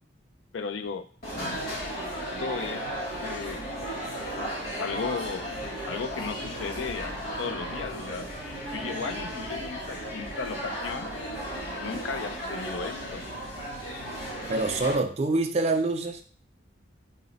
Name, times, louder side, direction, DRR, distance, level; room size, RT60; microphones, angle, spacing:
voice 1, 0.5-1.1 2.2-2.9 3.2-3.7 4.4-5.5 5.9-8.3 8.7-11.1 11.8-13.2, left 5 dB, 90° left, 10 dB, 0.4 m, -35 dB
sound 1, 1.2-15.0, equal, 50° left, 1.6 m, -35 dB
voice 2, 14.5-16.2, right 2 dB, 35° right, 6 dB, 0.4 m, -26 dB
3.9 x 2.0 x 3.9 m, 0.43 s
head